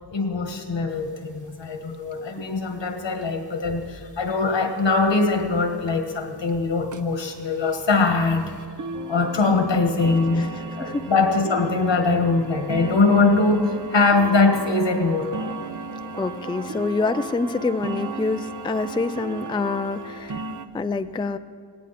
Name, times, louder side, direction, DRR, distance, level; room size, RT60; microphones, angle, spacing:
voice 1, 0.1-8.5 9.1-15.3, left 3 dB, 80° left, 5 dB, 1.7 m, -22 dB
sound 1, 0.9-1.0 1.3-1.4 1.6-1.8 2.1-2.5 3.2-3.3 3.8-3.9 4.3-4.4 4.8-4.9 5.4-5.5 5.9-6.1 6.5-6.6 6.9-20.7, right 3 dB, 45° right, 0.7 m, -37 dB
sound 2, 8.9-20.2, right 5 dB, 85° right, 1.5 m, -40 dB
voice 2, 16.2-20.4 20.7-21.4, left 3 dB, 10° left, 11 dB, 0.3 m, -26 dB
18.0 x 17.0 x 4.2 m, 2.1 s
wide cardioid pair, 110°, 44 cm